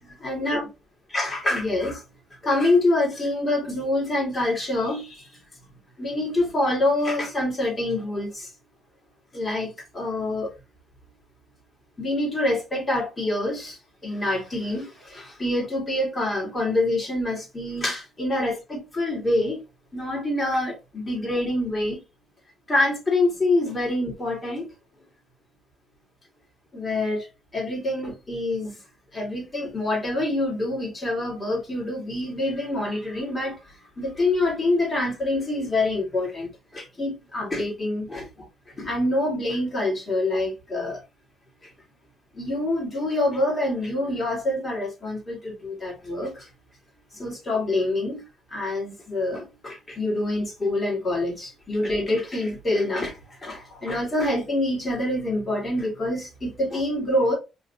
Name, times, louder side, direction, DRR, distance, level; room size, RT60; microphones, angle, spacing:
voice 1, 0.2-0.6 1.1-2.0 2.4-5.2 6.0-8.5 9.3-10.5 12.0-13.8 14.0-19.6 19.9-22.0 22.7-24.7 26.7-27.3 27.5-28.7 29.1-33.6 34.0-38.3 38.8-41.0 42.3-46.4 47.2-48.2 48.5-53.2 53.4-57.4, left 2 dB, 30° left, 2.1 m, -26 dB
3.8 x 2.9 x 2.7 m
cardioid pair, 80°, 0 cm